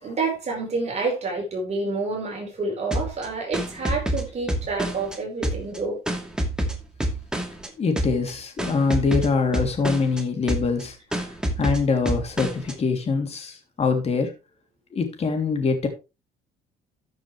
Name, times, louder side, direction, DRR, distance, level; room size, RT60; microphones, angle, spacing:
voice 1, 0.0-6.0, right 3 dB, 40° right, 5.0 m, -28 dB
sound 1, 2.9-5.2 5.4-7.7 8.0-8.3 8.6-10.2 10.5-10.8 11.1-12.7, right 1 dB, 5° right, 2.3 m, -27 dB
voice 2, 7.8-11.3 11.6-14.3 14.9-15.9, left 4 dB, 40° left, 3.2 m, -24 dB
13.5 x 7.2 x 3.3 m
cardioid pair, 110°, 17 cm